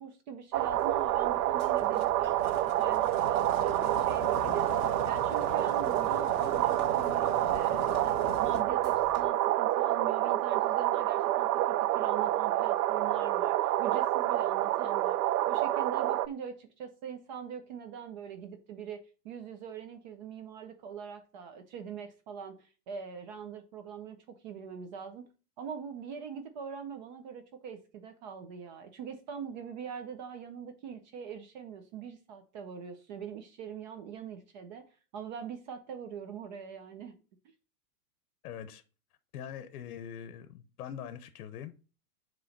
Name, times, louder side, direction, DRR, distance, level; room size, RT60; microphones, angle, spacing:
voice 1, 0.0-15.2 15.5-19.0 19.2-25.3 25.6-34.9 35.1-37.1, right 6 dB, 30° right, 0.5 m, -43 dB
sound 1, 0.5-9.3, left 3 dB, ahead, 2.5 m, -51 dB
sound 2, 0.5-16.3, right 14 dB, 80° right, 0.6 m, -28 dB
sound 3, 1.7-8.6, left 12 dB, 45° left, 0.5 m, -44 dB
voice 2, 38.4-38.8 39.3-41.7, left 9 dB, 80° left, 0.8 m, -43 dB
7.6 x 3.1 x 5.2 m
supercardioid pair, 170°, 45 cm